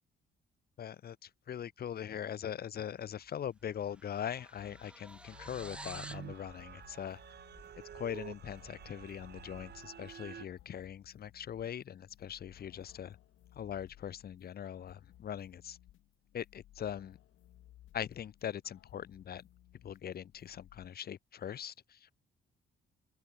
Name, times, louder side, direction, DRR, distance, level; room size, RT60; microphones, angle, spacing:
voice 1, 0.8-7.2 7.9-13.2 13.5-15.8 16.3-17.2 17.9-19.4 19.8-22.1, left 9 dB, 50° left, 0.9 m, -41 dB
sound 1, 3.1-3.3 3.6-6.3, right 1 dB, 5° right, 2.1 m, -50 dB
sound 2, 4.6-20.9, left 13 dB, 80° left, 5.0 m, -60 dB
sound 3, 5.3-10.5, right 9 dB, 55° right, 1.8 m, -49 dB
open air
cardioid pair, 90°, 20 cm